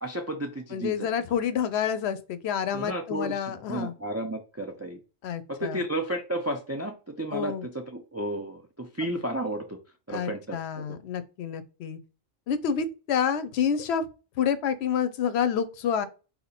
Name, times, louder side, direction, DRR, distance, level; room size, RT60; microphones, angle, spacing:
voice 1, 0.0-1.3 2.7-5.0 5.5-9.8 10.1-11.0, right 1 dB, 25° right, 0.4 m, -33 dB
voice 2, 0.7-3.9 5.2-5.8 7.3-7.6 10.1-12.0 12.5-14.1 14.4-16.1, left 7 dB, 80° left, 0.9 m, -28 dB
4.1 x 2.8 x 4.1 m
omnidirectional pair, 1.1 m